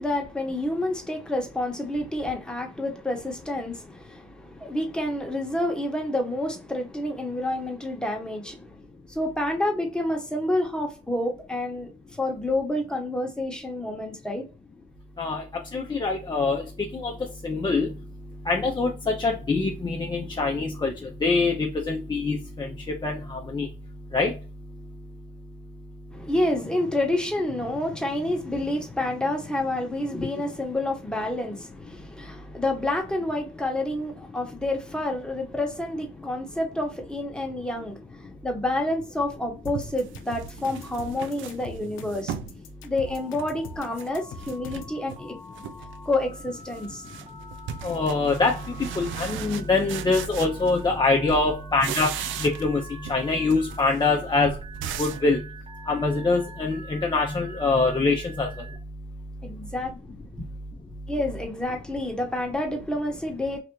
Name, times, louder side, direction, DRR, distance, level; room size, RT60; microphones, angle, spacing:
voice 1, 0.0-8.8 9.1-11.9 12.2-14.5 26.1-42.3 42.8-45.4 46.1-47.0 59.4-59.9 61.1-63.6, left 1 dB, 5° left, 1.1 m, -29 dB
voice 2, 15.7-16.7 16.9-17.1 17.4-17.9 18.5-22.7 23.0-23.7 24.1-24.3 47.8-52.1 52.4-52.8 53.1-54.6 55.0-55.4 55.9-58.5, left 3 dB, 20° left, 0.6 m, -24 dB
sound 1, 39.1-39.2 39.7-42.6 43.0-44.1 44.4-45.2 45.5-46.0 46.3-51.0 51.3-52.8 53.0-55.3, right 9 dB, 75° right, 0.4 m, -38 dB
sound 2, 39.6-45.0, left 4 dB, 90° left, 0.5 m, -41 dB
Telephone, 43.1-58.8, right 1 dB, 30° right, 0.8 m, -46 dB
3.3 x 2.4 x 3.0 m
cardioid pair, 90°, 20 cm